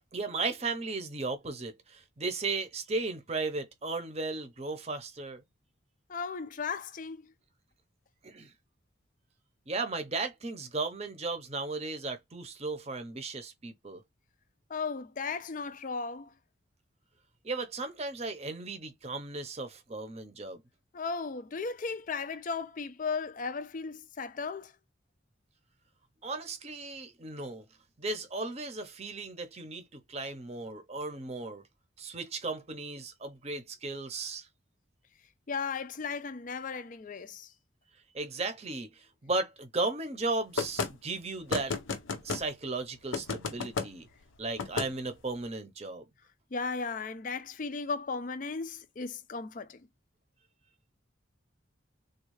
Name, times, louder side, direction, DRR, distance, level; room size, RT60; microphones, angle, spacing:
voice 1, 0.1-5.4 8.2-8.5 9.7-14.0 17.4-20.6 26.2-27.7 28.0-31.6 32.0-34.5 38.1-41.7 42.2-44.1 44.4-46.0, right 3 dB, 30° right, 0.7 m, -35 dB
voice 2, 6.1-7.3 14.7-16.3 20.9-24.7 35.5-37.5 46.5-49.9, left 4 dB, 40° left, 0.4 m, -36 dB
sound 1, 40.6-40.9 41.5-42.4 43.1-43.9 44.6-44.9, left 4 dB, 80° left, 0.6 m, -32 dB
3.5 x 2.3 x 3.1 m
head